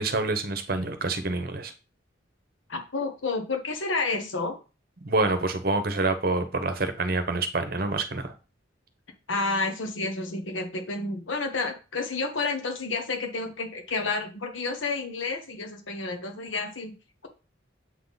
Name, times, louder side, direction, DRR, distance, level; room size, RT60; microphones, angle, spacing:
voice 1, 0.0-1.7 5.0-8.3, right 2 dB, 50° right, 8 dB, 0.9 m, -27 dB
voice 2, 2.7-4.6 9.3-16.9, left 3 dB, 80° left, 4 dB, 1.1 m, -30 dB
7.9 x 3.7 x 4.0 m, 0.32 s
head